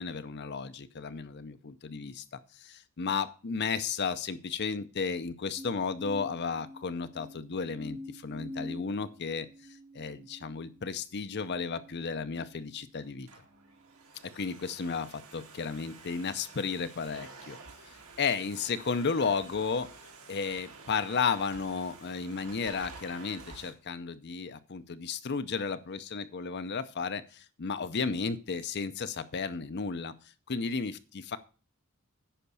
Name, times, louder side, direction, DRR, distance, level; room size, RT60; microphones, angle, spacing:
voice 1, 0.0-2.2 2.6-9.5 9.9-13.3 14.4-17.6 18.2-20.0 20.3-30.1 30.5-31.4, left 5 dB, 50° left, 11 dB, 0.6 m, -33 dB
sound 1, 5.6-13.0 13.6-14.1, left 1 dB, 20° right, 0.8 m, -47 dB
Domestic sounds home sounds, 13.0-23.7, right 4 dB, 75° right, 2.2 m, -50 dB
10.0 x 5.2 x 6.8 m, 0.37 s
head